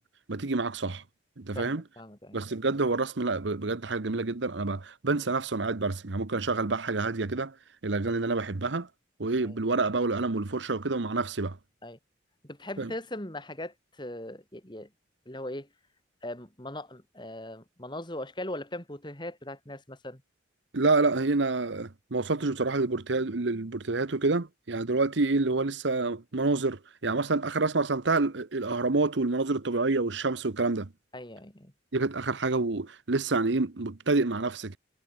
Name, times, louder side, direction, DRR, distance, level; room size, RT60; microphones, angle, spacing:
voice 1, 0.3-1.0 1.4-1.8 2.3-7.5 7.8-8.9 9.2-11.6 12.8-12.9 20.7-30.9 31.9-34.8, right 3 dB, 70° right, 1.0 m, -28 dB
voice 2, 1.6-2.5 9.4-9.6 11.8-12.0 12.4-14.9 15.3-15.7 16.2-20.2 31.1-31.7, left 1 dB, 25° left, 3.4 m, -39 dB
head